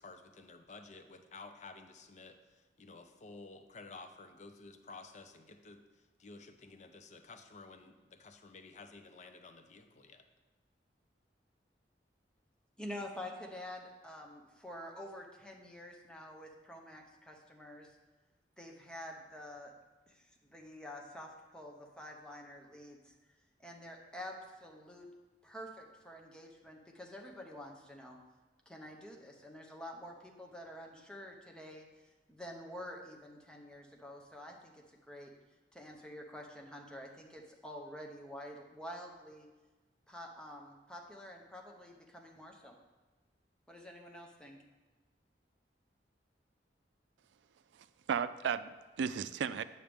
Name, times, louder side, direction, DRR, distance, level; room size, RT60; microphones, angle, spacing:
voice 1, 0.0-10.2, left 3 dB, 40° left, 7 dB, 0.5 m, -53 dB
voice 2, 12.8-18.0 18.6-19.7 20.1-23.2 23.6-25.1 25.4-28.2 28.7-31.8 32.3-35.3 35.7-39.5 40.1-42.8 43.7-44.6, left 1 dB, 5° left, 0 dB, 0.8 m, -48 dB
voice 3, 47.7-49.6, right 7 dB, 90° right, 14 dB, 0.3 m, -35 dB
8.7 x 6.3 x 3.5 m, 1.2 s
head